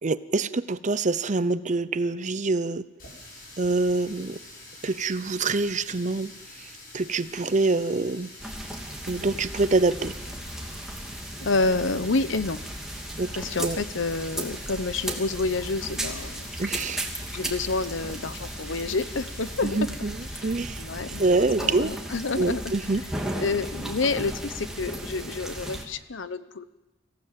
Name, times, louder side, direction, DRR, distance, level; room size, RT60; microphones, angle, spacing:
voice 1, 0.0-2.9 3.6-4.4 4.8-6.3 6.6-8.3 9.1-10.1 13.2-13.3 13.6-13.8 16.6-17.1 19.6-20.2 20.4-20.8 21.2-21.9 22.4-23.0, right 3 dB, 40° right, 15 dB, 0.7 m, -25 dB
Water tap faucet, 3.0-19.6, left 2 dB, 50° left, 7.2 m, -46 dB
sound 1, 8.4-25.8, right 1 dB, 5° right, 2.7 m, -36 dB
voice 2, 11.4-12.6 13.4-16.5 17.3-19.8 20.3-22.7 23.4-26.6, left 3 dB, 75° left, 13 dB, 0.9 m, -29 dB
25.5 x 16.0 x 7.6 m, 1.0 s
head